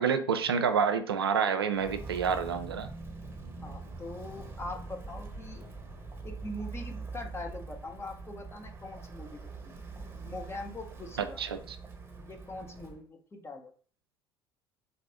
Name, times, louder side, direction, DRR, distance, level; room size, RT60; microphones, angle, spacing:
voice 1, 0.0-2.9 11.4-11.8, right 6 dB, 85° right, 8 dB, 0.4 m, -28 dB
Walk footsteps, 1.7-13.0, right 3 dB, 15° right, 1.0 m, -43 dB
voice 2, 3.6-5.7 6.2-9.7 10.2-11.4 12.2-13.7, left 2 dB, 20° left, 4 dB, 0.9 m, -42 dB
4.1 x 2.5 x 3.4 m, 0.43 s
figure-of-eight pair, 60°, 12 cm